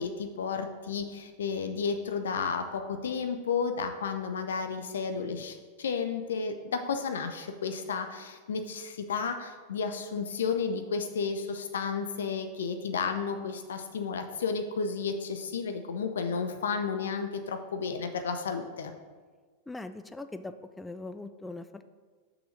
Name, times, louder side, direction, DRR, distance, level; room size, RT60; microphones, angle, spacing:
voice 1, 0.0-18.9, left 5 dB, 65° left, 7 dB, 0.6 m, -32 dB
voice 2, 19.7-21.8, left 2 dB, 10° left, 10 dB, 0.4 m, -41 dB
6.2 x 5.9 x 6.3 m, 1.5 s
figure-of-eight pair, 90°, 0 cm